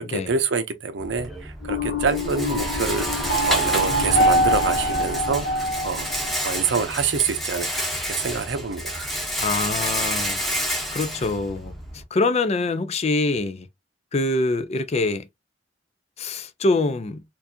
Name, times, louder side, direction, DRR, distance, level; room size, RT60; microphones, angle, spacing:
voice 1, 0.0-6.1 6.4-9.1, right 5 dB, 80° right, 0.7 m, -26 dB
Rattle, 1.0-12.0, equal, ahead, 0.9 m, -30 dB
sound 1, 1.6-6.7, equal, 70° left, 1.5 m, -24 dB
voice 2, 9.4-10.4 10.7-13.7 14.1-15.3 16.2-17.2, left 3 dB, 35° left, 0.4 m, -25 dB
4.4 x 2.6 x 2.7 m
head